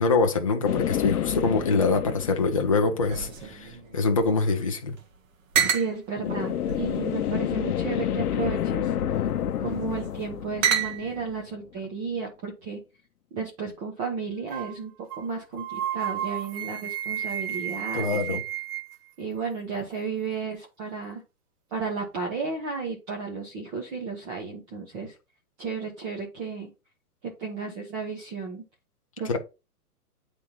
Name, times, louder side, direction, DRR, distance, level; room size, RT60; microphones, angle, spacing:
voice 1, 0.0-5.0 17.9-18.4 29.2-29.4, left 3 dB, 25° left, 0.4 m, -24 dB
sound 1, 0.6-3.4 6.2-11.6, left 10 dB, 70° left, 0.7 m, -29 dB
sound 2, 3.0-4.7 5.0-5.1 5.5-5.9 6.7-7.5 8.3-8.8 9.7-10.1 10.6-11.3, right 8 dB, 55° right, 1.4 m, -29 dB
voice 2, 5.6-8.9 9.6-12.8 13.3-18.4 19.2-21.2 21.7-25.1 25.6-26.7 27.2-28.6 29.2-29.4, right 5 dB, 20° right, 1.0 m, -33 dB
sound 3, 14.5-14.8 15.1-15.3 15.6-19.0, right 10 dB, 75° right, 0.8 m, -32 dB
9.4 x 3.6 x 2.8 m
hypercardioid pair, 155°, 46 cm